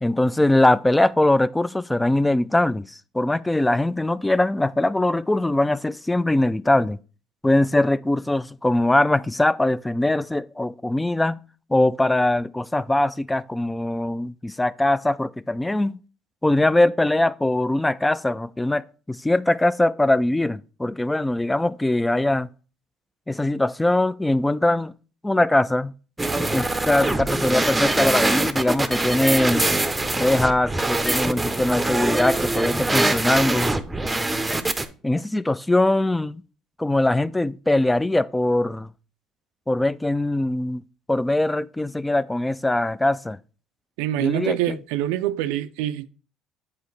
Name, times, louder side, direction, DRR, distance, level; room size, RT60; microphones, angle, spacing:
voice 1, 0.0-7.0 7.4-11.4 11.7-16.0 16.4-22.5 23.3-24.9 25.2-25.9 26.5-29.6 30.1-33.7 35.0-36.4 36.8-38.9 39.7-40.8 41.1-43.4 44.2-44.8, left 1 dB, 10° left, 0.3 m, -21 dB
sound 1, 26.2-34.9, right 2 dB, 15° right, 0.7 m, -23 dB
voice 2, 44.0-46.1, right 13 dB, 80° right, 0.3 m, -25 dB
8.3 x 4.5 x 3.1 m
hypercardioid pair, 70°, 0 cm